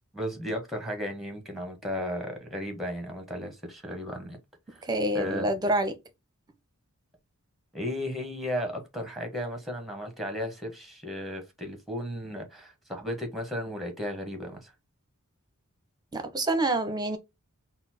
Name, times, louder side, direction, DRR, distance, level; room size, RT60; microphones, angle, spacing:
voice 1, 0.1-4.4 4.7-4.8 5.1-5.5 7.7-14.7, equal, ahead, 1.2 m, -35 dB
voice 2, 4.8-6.0 16.1-17.2, right 1 dB, 20° right, 0.8 m, -27 dB
4.1 x 2.0 x 4.3 m
head